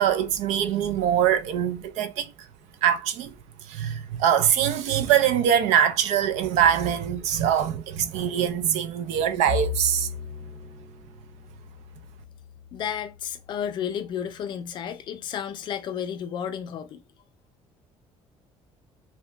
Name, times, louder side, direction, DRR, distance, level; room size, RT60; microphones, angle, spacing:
voice 1, 0.0-2.3 2.8-3.3 3.7-10.1, right 9 dB, 80° right, 0.4 m, -23 dB
Bowed string instrument, 9.5-13.9, left 7 dB, 30° right, 0.6 m, -36 dB
voice 2, 12.7-17.0, left 8 dB, 45° left, 0.4 m, -32 dB
2.8 x 2.1 x 3.3 m
cardioid pair, 165°, 11 cm